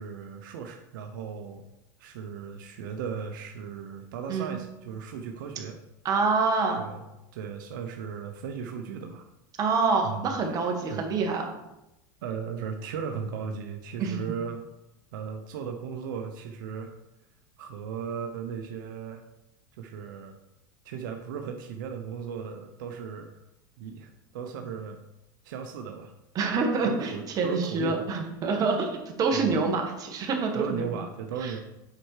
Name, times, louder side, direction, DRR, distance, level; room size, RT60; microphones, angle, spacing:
voice 1, 0.0-1.6 2.0-5.8 6.8-7.0 7.3-9.3 10.0-11.1 12.2-14.7 15.1-16.9 17.6-19.2 19.7-20.4 20.8-23.3 23.8-25.0 25.4-26.1 26.8-28.1 29.3-29.6 30.5-31.6, right 6 dB, 75° right, 4 dB, 0.8 m, -36 dB
voice 2, 6.0-6.8 9.6-11.5 14.0-14.2 26.3-31.0 31.4-31.5, right 4 dB, 35° right, 2 dB, 1.6 m, -26 dB
7.7 x 4.5 x 4.8 m, 0.91 s
supercardioid pair, 120°, 11 cm